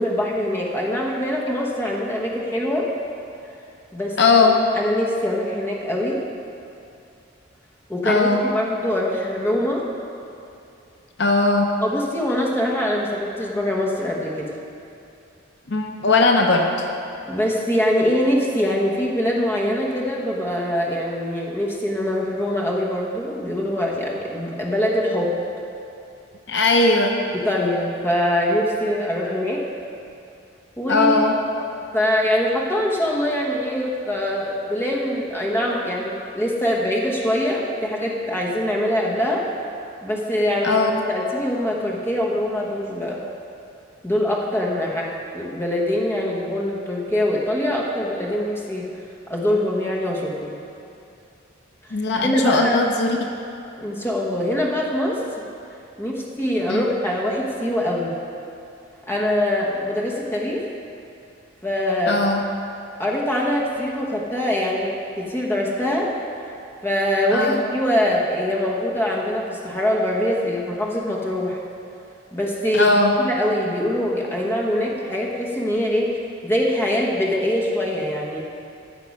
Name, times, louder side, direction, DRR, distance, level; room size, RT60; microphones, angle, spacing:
voice 1, 0.0-2.9 3.9-4.2 4.8-6.2 7.9-9.8 11.8-14.5 17.3-25.3 27.4-29.6 30.8-31.4 31.9-39.4 40.0-43.2 44.0-48.9 49.3-50.6 51.9-52.8 53.8-55.2 56.0-58.1 59.1-60.6 61.6-62.2 63.0-66.1 66.8-71.6 72.3-72.9 73.2-76.1 76.4-78.4, left 1 dB, 10° left, -3 dB, 1.1 m, -23 dB
voice 2, 4.2-4.6 8.0-8.4 11.2-11.7 15.7-16.9 26.5-27.2 30.9-31.4 40.6-41.0 51.9-53.2 56.7-56.8 62.1-62.4 67.3-67.6 72.7-73.1, left 3 dB, 60° left, 2 dB, 0.7 m, -18 dB
14.5 x 5.8 x 5.4 m, 2.6 s
head